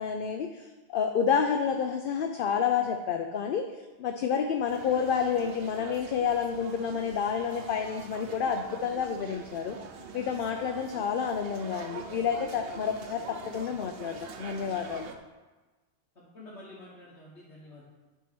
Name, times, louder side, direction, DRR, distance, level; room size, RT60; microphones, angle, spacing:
voice 1, 0.0-3.6 4.0-9.8 10.1-15.1, left 7 dB, 60° left, 5 dB, 0.6 m, -29 dB
sound 1, 4.7-15.2, right 5 dB, 65° right, 0.9 m, -45 dB
voice 2, 16.2-17.8, left 1 dB, 80° left, -7 dB, 1.7 m, -49 dB
9.2 x 3.6 x 6.0 m, 1.2 s
omnidirectional pair, 1.1 m